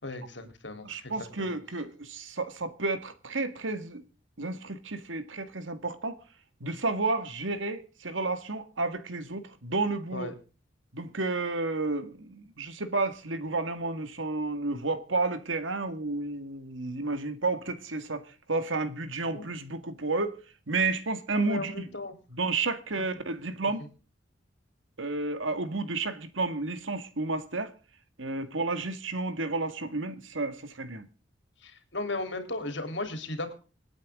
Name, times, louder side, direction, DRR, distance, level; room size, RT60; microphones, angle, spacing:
voice 1, 0.0-1.6 10.1-10.3 19.3-19.4 21.3-22.1 31.6-33.5, left 2 dB, 65° left, 3.6 m, -36 dB
voice 2, 0.8-4.0 4.4-6.2 6.6-10.3 10.9-20.4 20.7-21.9 22.3-23.8 25.0-27.7 28.2-31.1, right 3 dB, 80° right, 1.9 m, -31 dB
26.5 x 9.3 x 3.7 m
head